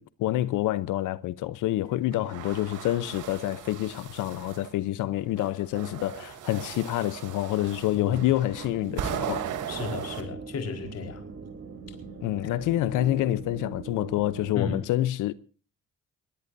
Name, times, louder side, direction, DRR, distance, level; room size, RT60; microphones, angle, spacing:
voice 1, 0.0-9.5 12.2-15.3, left 14 dB, 90° left, 0.8 m, -27 dB
sound 1, 2.1-4.7 5.4-10.2, right 9 dB, 85° right, 3.0 m, -37 dB
sound 2, 8.4-14.8, right 4 dB, 50° right, 3.8 m, -41 dB
voice 2, 9.7-11.2 12.4-12.5 14.5-14.8, left 5 dB, 55° left, 4.5 m, -33 dB
21.5 x 21.0 x 2.6 m
cardioid pair, 90°, 30 cm